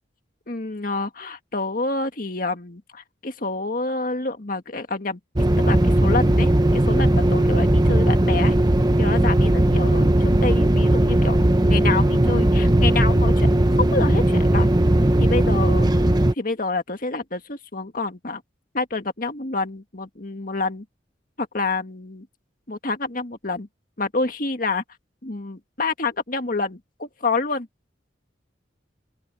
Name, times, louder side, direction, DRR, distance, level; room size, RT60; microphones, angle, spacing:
voice 1, 0.5-5.2 5.6-8.5 9.0-11.4 11.7-13.5 13.8-14.7 15.2-15.9 16.3-18.4 18.7-20.8 21.4-22.3 22.7-23.7 24.0-24.8 25.2-27.7, left 3 dB, 50° left, 1.8 m, -28 dB
sound 1, 5.4-16.3, right 1 dB, 20° right, 0.9 m, -18 dB
open air
head